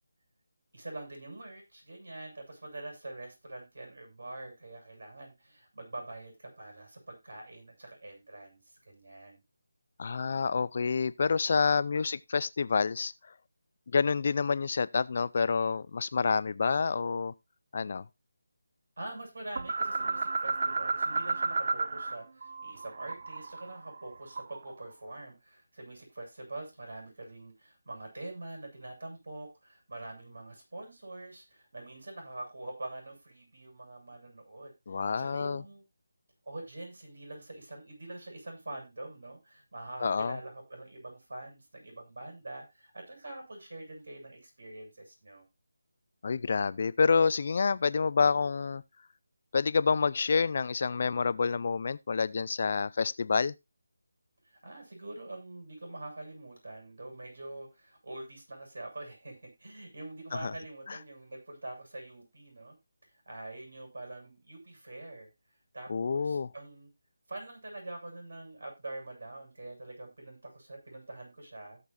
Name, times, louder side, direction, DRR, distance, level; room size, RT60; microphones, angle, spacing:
voice 1, 0.7-9.4 11.9-12.1 19.0-34.7 35.2-35.9 36.4-45.4 54.4-62.8 63.3-65.3 65.7-66.9 67.3-71.8, right 2 dB, 75° right, 7.0 m, -45 dB
voice 2, 10.0-13.1 13.9-17.3 17.7-18.0 34.9-35.6 40.0-40.4 46.2-48.8 49.5-53.5 60.3-60.5 60.9-61.0 65.9-66.5, left 5 dB, 45° left, 0.5 m, -28 dB
sound 1, 19.6-22.2 22.4-24.7, right 3 dB, 55° right, 0.6 m, -32 dB
17.0 x 6.7 x 2.6 m
figure-of-eight pair, 165°, 0 cm